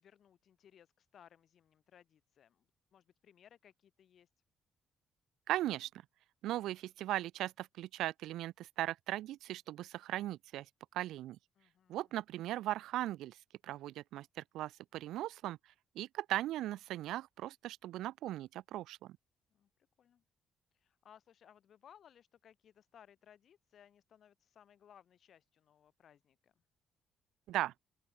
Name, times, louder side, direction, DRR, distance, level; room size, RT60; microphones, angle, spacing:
voice 1, 0.0-4.3 11.5-12.2 19.5-19.7 20.0-20.2 20.8-26.5, left 9 dB, 60° left, 3.2 m, -63 dB
voice 2, 5.5-5.9 6.4-10.7 10.9-11.4 11.9-13.4 13.6-15.6 16.0-19.2 27.5-27.7, right 14 dB, 85° right, 0.5 m, -38 dB
open air
cardioid pair, 90°, 0 cm